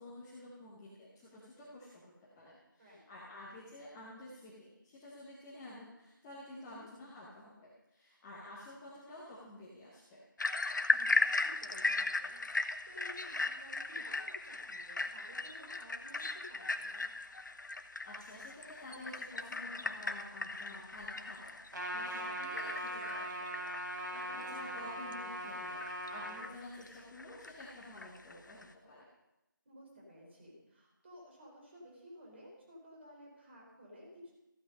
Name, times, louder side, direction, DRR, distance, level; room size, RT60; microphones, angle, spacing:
voice 1, 0.0-10.2 18.0-28.6 28.9-29.1, left 1 dB, 5° left, -7 dB, 0.9 m, -51 dB
voice 2, 6.5-6.8 10.9-17.1 24.1-24.4 29.6-34.3, equal, 30° right, -2 dB, 4.2 m, -55 dB
sound 1, 10.4-28.7, left 3 dB, 60° left, 1.0 m, -37 dB
Trumpet, 21.7-26.4, right 1 dB, 60° right, 3.4 m, -40 dB
14.5 x 9.0 x 5.4 m, 0.94 s
figure-of-eight pair, 170°, 11 cm